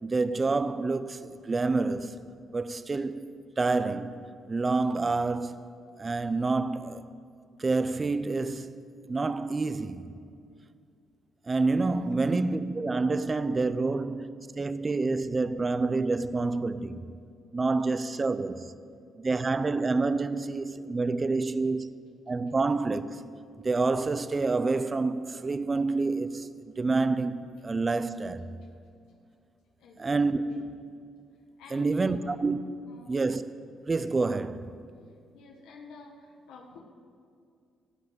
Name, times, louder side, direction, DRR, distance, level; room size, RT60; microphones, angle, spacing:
voice 1, 0.0-2.2 2.5-3.3 3.6-5.6 6.0-7.0 7.6-8.7 9.1-10.1 11.4-17.0 17.5-18.7 19.2-21.9 22.3-23.2 23.6-28.5 30.0-30.4 31.7-32.6 33.1-33.4 33.9-34.8, right 3 dB, 30° right, 0.6 m, -28 dB
voice 2, 29.8-30.6 31.6-32.3 32.8-33.1 35.3-36.8, left 4 dB, 85° left, 1.4 m, -49 dB
16.5 x 5.6 x 9.1 m
cardioid pair, 90°, 0 cm